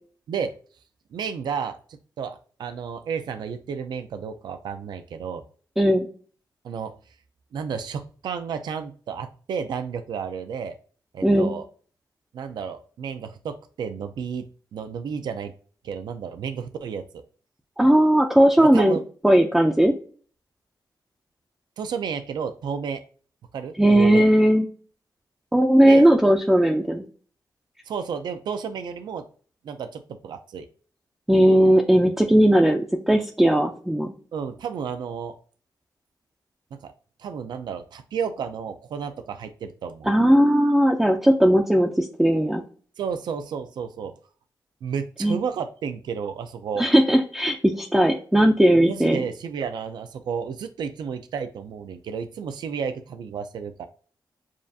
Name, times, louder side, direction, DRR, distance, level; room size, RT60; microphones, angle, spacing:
voice 1, 1.1-1.8 2.2-5.4 6.6-6.9 7.5-10.7 11.1-11.7 12.3-14.4 14.7-15.5 15.8-17.2 18.7-19.0 21.8-23.0 23.5-24.3 25.8-26.1 27.9-29.3 29.6-30.7 34.3-35.4 36.8-36.9 37.2-40.1 43.0-44.1 44.8-46.9 48.7-53.9, right 6 dB, 70° right, 9 dB, 0.5 m, -32 dB
voice 2, 5.8-6.1 11.2-11.5 17.8-19.0 19.2-19.9 23.8-24.7 25.5-27.0 31.3-34.1 40.1-42.6 45.2-45.4 46.8-49.2, right 1 dB, 5° right, 1 dB, 0.4 m, -18 dB
7.3 x 2.5 x 2.6 m, 0.42 s
wide cardioid pair, 175°, 8 cm